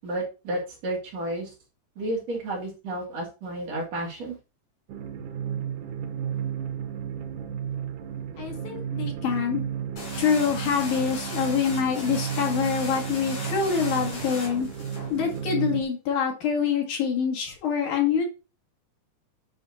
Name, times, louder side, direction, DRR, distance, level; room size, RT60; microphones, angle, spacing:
voice 1, 0.0-1.5 2.0-4.4, right 1 dB, 60° right, -2 dB, 3.0 m, -31 dB
Low ambient, 4.9-15.8, right 8 dB, 85° right, 2.5 m, -33 dB
voice 2, 8.4-9.6 10.2-14.7 15.1-18.2, left 7 dB, 80° left, 0 dB, 3.5 m, -25 dB
sound 1, 10.0-15.4, left 2 dB, 65° left, 5.1 m, -38 dB
10.0 x 5.5 x 2.7 m, 0.30 s
omnidirectional pair, 3.6 m